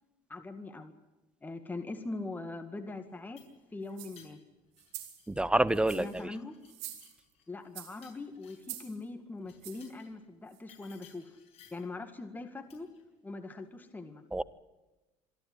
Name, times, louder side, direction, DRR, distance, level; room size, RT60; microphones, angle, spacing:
voice 1, 0.3-0.9 1.4-3.4 3.7-4.4 5.9-6.6 7.5-11.3 11.7-12.9 13.2-14.2, left 3 dB, 15° left, 6 dB, 1.9 m, -41 dB
sound 1, 3.0-5.4 5.7-8.8 9.4-10.2 10.7-11.9 12.7-13.0, left 8 dB, 50° left, 6.7 m, -61 dB
sound 2, 3.9-4.3 4.8-5.2 5.7-6.2 6.7-7.3 7.8-8.1 8.6-9.0 9.6-9.9 10.5-10.6, right 14 dB, 90° right, 3.7 m, -46 dB
voice 2, 5.3-6.3 14.3-14.4, right 1 dB, 5° right, 18 dB, 0.7 m, -28 dB
27.0 x 11.5 x 9.7 m, 1.1 s
cardioid pair, 125°, 14 cm